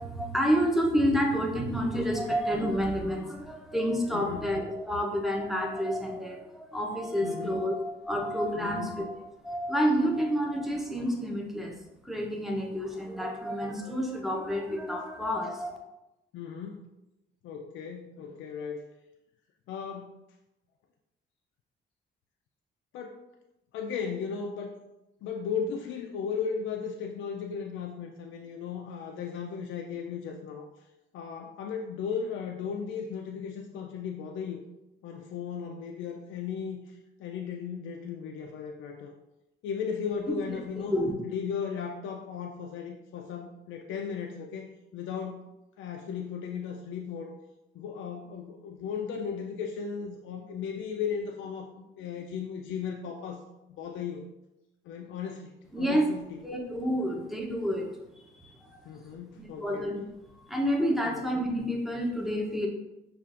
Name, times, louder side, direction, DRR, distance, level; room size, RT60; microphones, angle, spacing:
voice 1, 0.0-9.1 9.4-11.8 12.0-15.8 40.9-41.1 55.7-56.1 56.4-57.9 58.4-58.8 59.4-60.0 60.4-62.7, equal, ahead, 1 dB, 0.7 m, -29 dB
voice 2, 7.2-7.7 8.5-9.0 16.3-16.9 17.4-18.9 19.7-20.2 22.9-23.2 23.7-24.7 25.2-30.7 31.1-34.6 35.0-39.1 39.6-40.9 41.2-45.5 45.8-47.3 47.7-53.4 53.7-54.3 54.8-55.5 55.8-56.4 58.9-59.9 61.0-61.2, left 6 dB, 80° left, 1 dB, 0.4 m, -36 dB
5.7 x 2.4 x 2.5 m, 0.94 s
cardioid pair, 90°, 20 cm